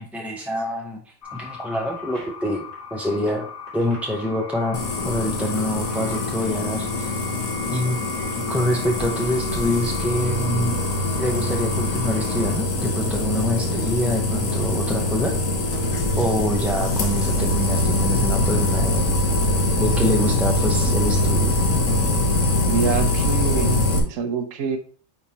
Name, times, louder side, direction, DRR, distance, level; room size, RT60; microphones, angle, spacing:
voice 1, 0.0-2.6 2.9-3.5 3.7-7.2 7.7-8.0 8.5-10.8 11.2-15.3 16.2-19.0 19.8-21.5, equal, ahead, 0 dB, 0.5 m, -26 dB
sound 1, 1.2-12.6, left 4 dB, 55° left, 3.1 m, -36 dB
sound 2, 4.7-24.0, left 1 dB, 70° left, 1.5 m, -23 dB
voice 2, 22.6-24.8, right 6 dB, 70° right, 6 dB, 1.1 m, -26 dB
9.4 x 3.6 x 2.8 m, 0.42 s
omnidirectional pair, 1.4 m